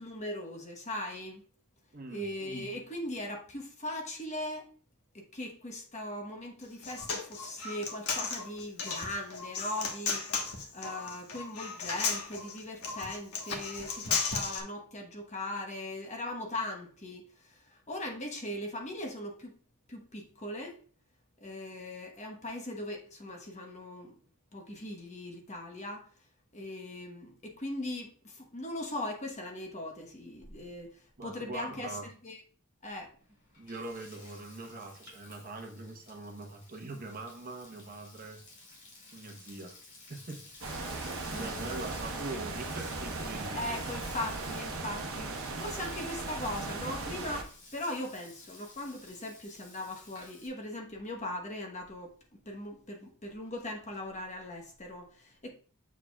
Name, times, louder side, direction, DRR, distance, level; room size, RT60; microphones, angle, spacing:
voice 1, 0.0-1.4 2.1-4.7 5.1-19.5 19.9-20.8 21.4-24.1 24.5-26.1 26.5-32.4 32.8-33.1 41.3-41.7 43.5-52.1 52.5-55.5, left 1 dB, 30° left, 1.1 m, -39 dB
voice 2, 1.9-2.2 31.2-32.1 33.6-38.4 39.1-39.8 40.1-40.4 41.3-43.9, right 2 dB, 40° right, 1.0 m, -42 dB
Human voice, 6.6-14.6, left 5 dB, 85° left, 1.3 m, -35 dB
Frying (food), 33.2-50.5, left 3 dB, 55° left, 2.6 m, -53 dB
sound 1, 40.6-47.4, right 3 dB, 65° right, 1.0 m, -37 dB
7.2 x 6.6 x 2.3 m
head